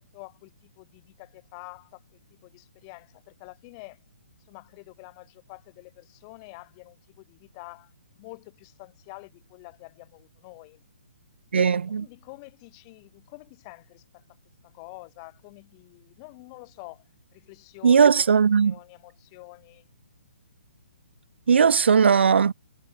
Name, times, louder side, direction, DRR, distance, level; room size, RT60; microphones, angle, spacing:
voice 1, 0.0-4.0 4.5-7.9 8.2-10.8 11.7-14.2 14.6-17.0 17.3-18.1 18.6-19.9, left 31 dB, 25° left, 6.9 m, -47 dB
voice 2, 11.5-12.1 17.8-18.8 21.5-22.5, right 6 dB, 70° right, 2.8 m, -18 dB
hypercardioid pair, 165°, 6 cm